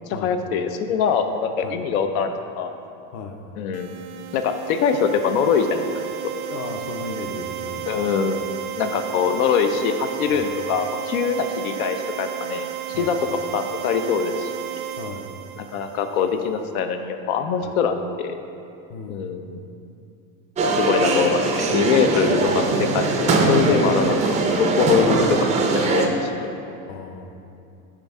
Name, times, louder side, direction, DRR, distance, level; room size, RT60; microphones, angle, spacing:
voice 1, 0.1-2.3 2.6-2.7 3.6-3.9 4.3-5.9 7.9-8.4 8.8-12.7 12.9-13.2 13.5-14.5 15.6-18.4 19.1-19.6 20.8-26.5, left 6 dB, 90° left, 7 dB, 0.6 m, -23 dB
voice 2, 3.1-3.4 6.5-7.9 8.3-8.4 10.3-10.5 12.9-13.1 15.0-15.3 17.6-17.7 18.9-19.3 22.3-22.6 26.9-27.3, left 4 dB, 40° left, 5 dB, 0.6 m, -36 dB
sound 1, 3.7-16.4, right 11 dB, 90° right, 0.5 m, -33 dB
sound 2, 20.6-26.1, right 3 dB, 20° right, 0.3 m, -21 dB
9.6 x 3.6 x 3.5 m, 2.6 s
supercardioid pair, 125°, 41 cm